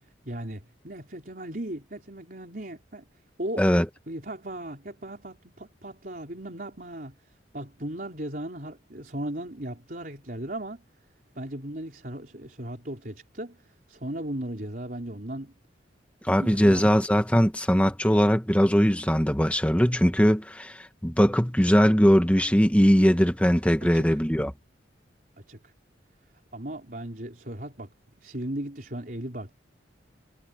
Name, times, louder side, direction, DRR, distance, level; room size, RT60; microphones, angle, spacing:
voice 1, 0.0-3.1 3.4-3.7 4.1-10.8 11.3-15.5 16.4-17.0 23.8-24.2 25.5-25.7 26.5-29.6, right 1 dB, 50° right, 4.5 m, -37 dB
voice 2, 16.2-24.5, equal, 5° left, 1.4 m, -21 dB
head